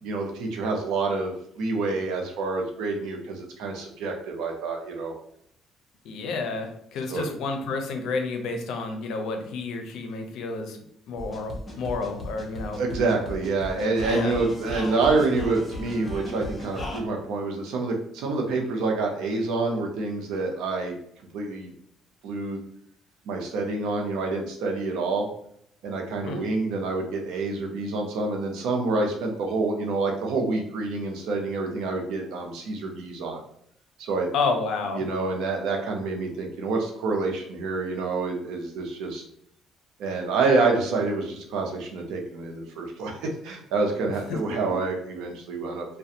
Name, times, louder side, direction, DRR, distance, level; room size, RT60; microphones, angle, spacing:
voice 1, 0.0-5.1 7.1-7.3 12.8-20.9 21.3-21.7 22.2-22.6 23.3-25.3 25.8-33.4 34.0-34.3 34.9-39.2 40.0-45.9, right 3 dB, 80° right, 2 dB, 0.6 m, -27 dB
voice 2, 6.0-10.8 11.1-12.8 14.1-14.3 26.2-26.5 34.3-35.0 44.0-44.6, left 4 dB, 75° left, 4 dB, 0.5 m, -30 dB
sound 1, 11.2-17.0, left 1 dB, 20° left, 0.7 m, -36 dB
2.4 x 2.2 x 2.8 m, 0.70 s
cardioid pair, 110°, 0 cm